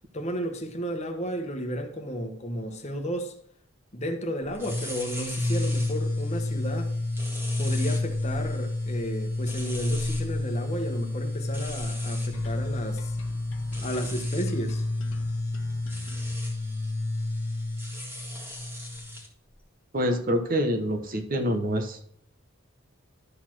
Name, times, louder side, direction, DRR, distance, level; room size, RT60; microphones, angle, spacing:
voice 1, 0.1-3.3 3.9-6.9 7.6-13.2 13.8-14.8, equal, 35° left, 1.2 m, -33 dB
sound 1, 4.5-19.3, left 2 dB, 10° right, 1.8 m, -30 dB
sound 2, 12.3-16.3, left 2 dB, 85° left, 1.3 m, -47 dB
voice 2, 19.9-22.0, equal, 45° right, 1.1 m, -26 dB
12.0 x 4.2 x 6.1 m
head